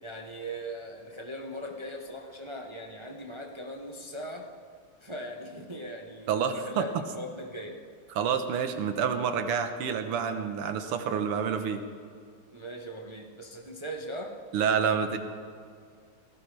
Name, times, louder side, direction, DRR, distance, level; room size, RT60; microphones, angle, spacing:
voice 1, 0.0-4.5 5.0-6.9 7.1-7.8 12.5-14.4, equal, 40° right, 1 dB, 0.4 m, -40 dB
voice 2, 6.3-6.9 8.1-11.8 14.5-15.2, right 7 dB, 85° right, 7 dB, 2.0 m, -28 dB
19.0 x 16.5 x 3.4 m, 2.2 s
omnidirectional pair, 2.4 m